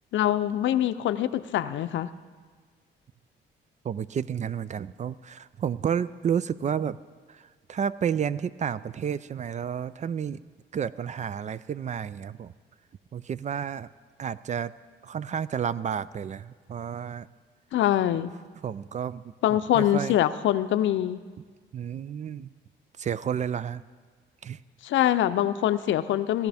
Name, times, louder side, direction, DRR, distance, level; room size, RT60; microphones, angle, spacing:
voice 1, 0.1-2.1 17.7-18.3 19.4-21.2 24.8-26.5, left 12 dB, 75° left, 12 dB, 0.6 m, -24 dB
voice 2, 3.8-7.0 7.3-7.4 7.7-10.4 10.7-12.5 13.1-13.9 14.2-14.7 15.0-17.3 18.6-20.1 21.7-22.5 23.0-23.8 24.4-24.6, right 8 dB, 35° right, 17 dB, 0.4 m, -31 dB
17.5 x 13.0 x 3.5 m, 1.5 s
cardioid pair, 90°, 20 cm